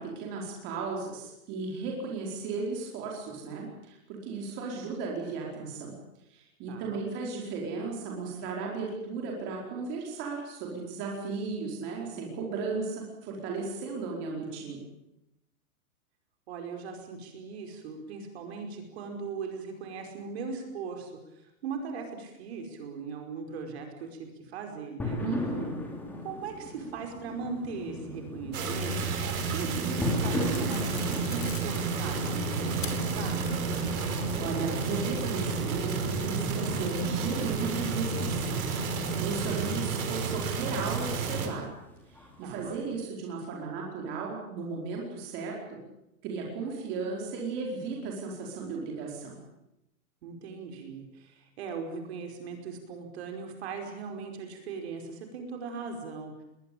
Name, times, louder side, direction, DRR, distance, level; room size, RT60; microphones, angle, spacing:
voice 1, 0.0-5.9 6.3-14.8 25.2-25.8 34.4-38.7 39.2-41.7 42.1-45.8 46.2-49.4, right 4 dB, 25° right, -1 dB, 4.8 m, -35 dB
voice 2, 6.7-7.0 16.5-25.2 26.2-33.5 42.4-42.8 50.2-56.4, right 5 dB, 45° right, 4 dB, 5.2 m, -39 dB
sound 1, 25.0-43.0, left 2 dB, 5° left, 2.9 m, -39 dB
sound 2, 28.5-41.5, right 4 dB, 65° right, 6.0 m, -31 dB
sound 3, 29.4-29.8 30.5-32.3 32.8-32.9 33.4-34.4, left 9 dB, 55° left, 5.2 m, -44 dB
22.0 x 21.0 x 8.7 m, 0.87 s
hypercardioid pair, 175°, 44 cm